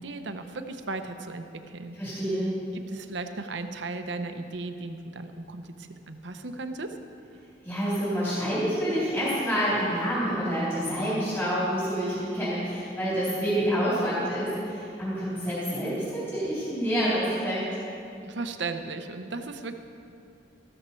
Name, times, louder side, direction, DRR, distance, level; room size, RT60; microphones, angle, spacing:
voice 1, 0.0-2.0 2.3-7.0 18.2-19.7, right 3 dB, 65° right, 7 dB, 0.8 m, -36 dB
voice 2, 2.0-2.5 7.6-17.6, equal, 10° left, -10 dB, 3.8 m, -27 dB
14.5 x 13.0 x 4.5 m, 2.5 s
head